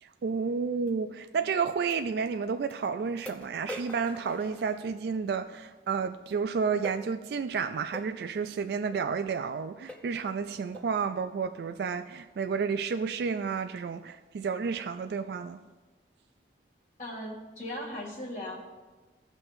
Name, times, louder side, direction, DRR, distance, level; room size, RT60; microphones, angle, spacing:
voice 1, 0.0-15.6, right 5 dB, 65° right, 0.3 m, -31 dB
sound 1, 0.9-1.0 1.9-2.0 2.7-2.8 3.3-5.2 6.8-7.1 7.9-8.1 8.9-9.1 9.5-9.6 9.9-10.2 10.7-11.0, left 1 dB, 10° left, 0.6 m, -44 dB
voice 2, 17.0-18.6, left 1 dB, 45° left, 2.4 m, -38 dB
16.5 x 5.9 x 2.6 m
head